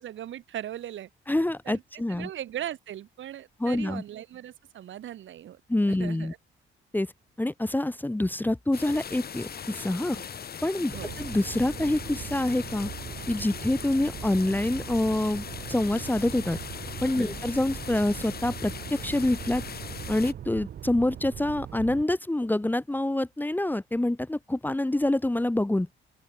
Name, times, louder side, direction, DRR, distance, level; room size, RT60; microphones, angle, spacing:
voice 1, 0.0-1.1 1.6-1.8 2.1-5.6 5.9-6.4 10.1-10.3 10.9-11.1 17.1-17.3, right 11 dB, 75° right, 5.1 m, -39 dB
voice 2, 1.3-2.3 3.6-4.0 5.7-6.3 6.9-7.1 7.4-10.2 10.6-12.9 13.3-16.6 17.0-19.6 20.1-25.9, left 1 dB, 10° left, 1.4 m, -26 dB
sound 1, 8.7-20.3, left 7 dB, 50° left, 6.2 m, -40 dB
sound 2, 10.9-22.0, right 10 dB, 55° right, 0.9 m, -40 dB
open air
cardioid pair, 90°, 20 cm